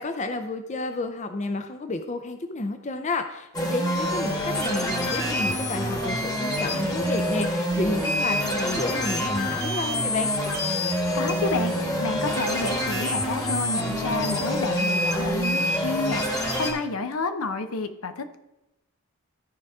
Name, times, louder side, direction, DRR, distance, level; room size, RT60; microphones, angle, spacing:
voice 1, 0.0-10.3, left 2 dB, 30° left, 8 dB, 0.5 m, -31 dB
sound 1, 3.5-16.7, equal, 15° left, 1.2 m, -26 dB
voice 2, 10.8-18.4, left 3 dB, 75° left, 9 dB, 0.7 m, -30 dB
14.0 x 4.9 x 3.6 m, 0.95 s
head